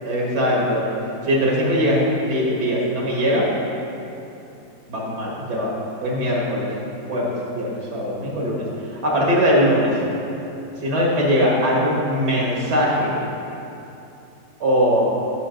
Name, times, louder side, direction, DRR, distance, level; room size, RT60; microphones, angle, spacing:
voice 1, 0.0-0.9 1.2-3.5 4.9-5.7 6.0-6.7 7.1-8.7 8.9-10.0 10.8-13.2 14.6-15.1, equal, 85° right, -4 dB, 2.2 m, -21 dB
11.5 x 5.5 x 3.9 m, 2.9 s
omnidirectional pair, 1.7 m